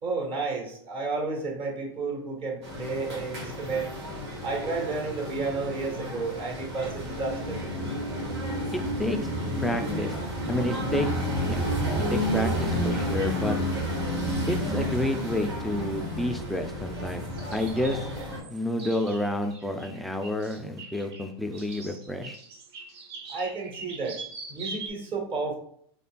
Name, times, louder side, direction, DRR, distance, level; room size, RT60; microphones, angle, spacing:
voice 1, 0.0-3.9 4.4-7.6 23.3-24.2 24.5-25.5, right 4 dB, 40° right, 1 dB, 1.3 m, -31 dB
sound 1, 2.6-18.4, equal, 90° right, 1.5 m, -31 dB
voice 2, 8.7-9.2 9.6-10.1 10.5-11.1 11.5-11.6 12.1-13.6 14.5-18.1 18.5-22.4, left 1 dB, ahead, 5 dB, 0.4 m, -30 dB
sound 2, 15.1-15.3 15.7-15.8 16.2-16.3 17.3-24.9, right 4 dB, 70° right, 0.9 m, -43 dB
4.1 x 3.3 x 2.2 m, 0.63 s
hypercardioid pair, 120°, 14 cm